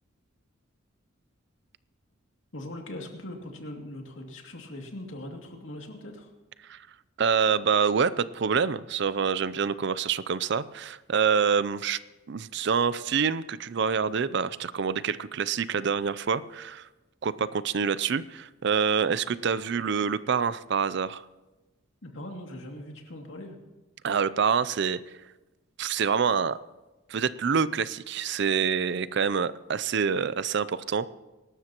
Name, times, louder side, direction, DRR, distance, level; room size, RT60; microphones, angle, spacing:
voice 1, 2.5-6.3 22.0-23.6, left 1 dB, 70° left, 2 dB, 2.5 m, -40 dB
voice 2, 7.2-12.0 12.3-16.9 17.2-21.2 24.0-25.0 25.8-26.6 27.1-31.1, right 6 dB, 60° right, 17 dB, 0.5 m, -26 dB
24.0 x 12.5 x 3.0 m, 1.1 s
head